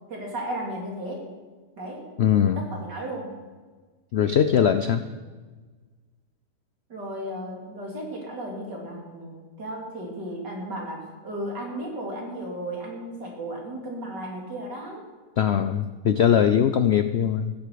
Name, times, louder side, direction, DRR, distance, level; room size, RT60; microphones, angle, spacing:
voice 1, 0.1-1.3 1.8-2.1 2.6-3.3 6.9-15.1, right 1 dB, 75° right, -1 dB, 3.9 m, -34 dB
voice 2, 2.2-2.6 4.1-5.0 15.4-17.5, left 8 dB, 85° left, 10 dB, 0.5 m, -21 dB
15.0 x 8.2 x 8.4 m, 1.4 s
omnidirectional pair, 1.9 m